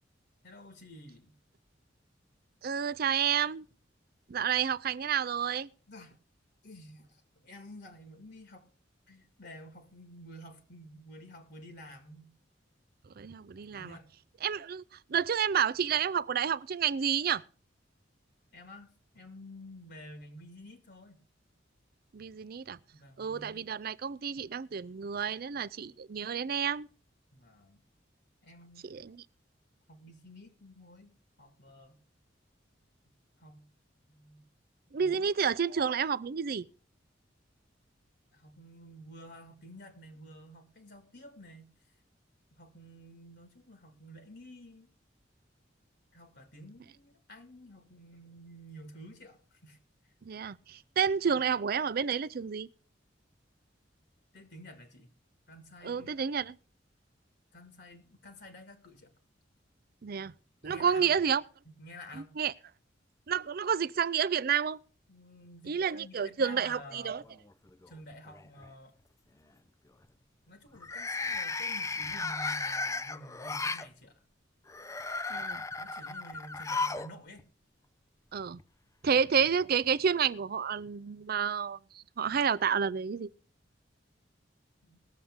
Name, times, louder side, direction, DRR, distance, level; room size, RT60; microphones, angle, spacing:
voice 1, 0.4-1.4 5.9-6.2 6.6-8.7 9.1-12.3 13.6-14.1 18.5-21.2 22.9-23.7 27.3-27.8 28.4-28.9 29.9-32.0 33.4-33.7 34.0-34.5 35.0-35.3 38.3-41.7 42.5-44.9 46.1-49.8 50.0-50.1 54.3-55.1 55.5-56.2 57.5-59.1 60.6-61.1 61.7-62.4 65.1-67.3 67.9-69.0 70.5-74.2 75.8-77.5 79.0-79.2 84.8-85.0, equal, 60° left, 1.9 m, -51 dB
voice 2, 2.6-3.7 4.3-5.7 13.2-14.0 14.4-14.8 15.1-17.4 22.1-22.8 23.2-26.9 28.8-29.2 34.9-36.7 50.2-52.7 55.8-56.6 60.0-60.3 60.6-61.4 62.4-62.5 63.3-64.8 65.7-67.2 75.3-75.6 78.3-78.6 79.0-83.3, right 7 dB, 55° right, 0.5 m, -30 dB
sound 1, 67.3-67.9 68.3-68.7 70.7-73.9 74.7-77.1 77.4-77.5 78.6-78.7, left 3 dB, 15° left, 0.5 m, -35 dB
20.0 x 7.1 x 3.6 m
head